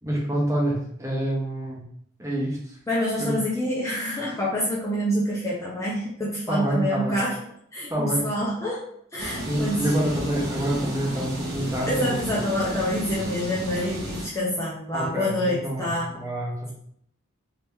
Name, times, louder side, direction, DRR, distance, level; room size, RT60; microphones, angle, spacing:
voice 1, 0.0-1.8 2.2-2.8 3.2-3.3 6.5-7.2 7.9-8.2 9.5-12.3 14.9-16.7, right 1 dB, 15° right, -4 dB, 0.8 m, -27 dB
voice 2, 2.9-7.4 7.7-8.8 9.1-9.9 11.9-16.1, equal, 15° left, -5 dB, 0.5 m, -27 dB
sound 1, 9.2-14.3, right 1 dB, 45° right, 1.2 m, -33 dB
2.9 x 2.8 x 3.5 m, 0.67 s
head